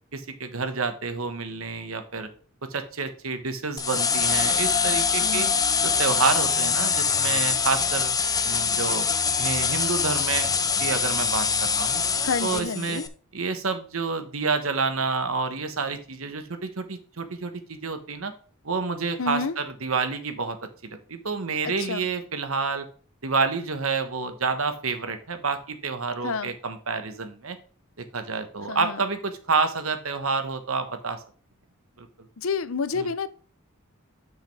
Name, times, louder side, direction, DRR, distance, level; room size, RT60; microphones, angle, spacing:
voice 1, 0.1-2.3 2.7-5.5 5.8-8.1 8.4-9.0 9.4-10.5 10.8-12.0 12.4-13.0 13.3-18.3 18.6-20.6 20.8-22.9 23.2-27.6 28.1-31.2 32.0-32.1 32.9-33.1, right 4 dB, 80° right, 1.3 m, -28 dB
sound 1, 3.8-13.1, left 6 dB, 20° left, 0.6 m, -24 dB
voice 2, 5.2-5.6 12.2-13.1 19.2-19.6 21.9-22.1 26.2-26.5 28.7-29.0 32.4-33.3, left 4 dB, 75° left, 0.7 m, -29 dB
7.9 x 6.3 x 3.4 m
head